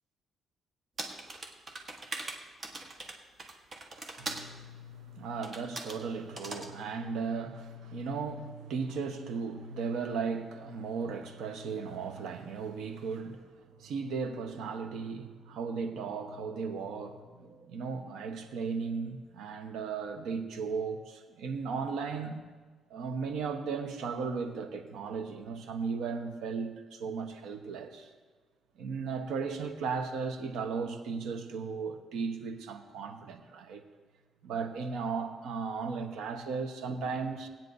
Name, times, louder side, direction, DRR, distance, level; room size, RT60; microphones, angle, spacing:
sound 1, 1.0-4.5 5.4-6.0 6.4-6.7, right 2 dB, 35° right, 1.3 m, -41 dB
voice 1, 4.2-13.5 13.8-22.4 22.9-28.1 28.8-33.8 34.4-37.5, right 5 dB, 85° right, 1.0 m, -36 dB
19.0 x 9.0 x 2.6 m
cardioid pair, 90°, 0 cm